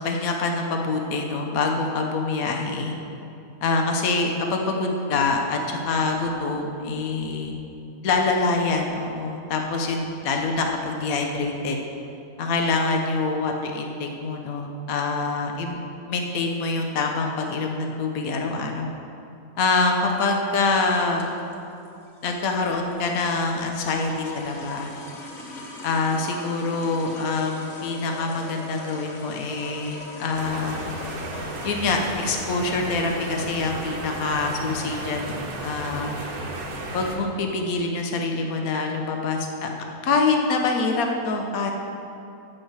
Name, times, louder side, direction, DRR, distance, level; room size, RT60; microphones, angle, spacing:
voice 1, 0.0-2.9 3.6-7.5 8.0-11.8 12.4-15.8 16.1-18.9 19.6-21.3 22.2-24.9 25.8-30.9 31.6-36.1 36.9-39.7 40.0-41.7, left 3 dB, 75° left, 2 dB, 1.3 m, -25 dB
sound 1, 19.9-34.5, left 2 dB, 55° left, 1.4 m, -42 dB
sound 2, 30.3-37.2, right 2 dB, 80° right, 1.6 m, -33 dB
8.3 x 6.4 x 7.8 m, 2.7 s
omnidirectional pair, 1.5 m